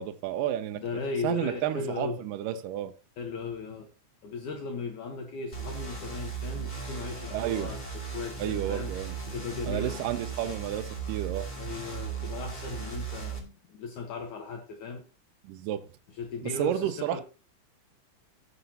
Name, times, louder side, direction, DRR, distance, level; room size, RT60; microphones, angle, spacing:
voice 1, 0.0-0.8 1.2-2.9 7.3-7.7 8.4-9.2 9.7-11.5 15.4-15.9 16.4-17.2, right 11 dB, 80° right, 2.3 m, -31 dB
voice 2, 0.7-2.2 3.2-3.9 4.2-8.9 9.3-10.1 11.6-15.0 16.1-17.2, left 4 dB, 70° left, 2.6 m, -37 dB
sound 1, 5.5-13.4, right 6 dB, 15° left, 2.4 m, -37 dB
17.0 x 6.7 x 2.8 m
omnidirectional pair, 3.8 m